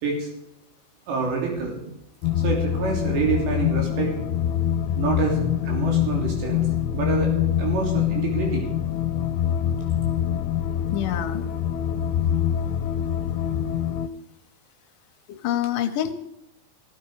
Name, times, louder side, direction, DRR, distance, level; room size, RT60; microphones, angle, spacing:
voice 1, 1.1-1.8 2.4-4.1 5.0-6.7 6.9-7.3 7.6-8.7, right 5 dB, 90° right, 0 dB, 5.4 m, -27 dB
sound 1, 2.2-14.1, left 10 dB, 90° left, 2.9 m, -25 dB
voice 2, 10.9-11.4 15.3-16.1, left 11 dB, 70° left, 7 dB, 2.1 m, -26 dB
16.5 x 15.5 x 4.8 m, 0.76 s
omnidirectional pair, 4.9 m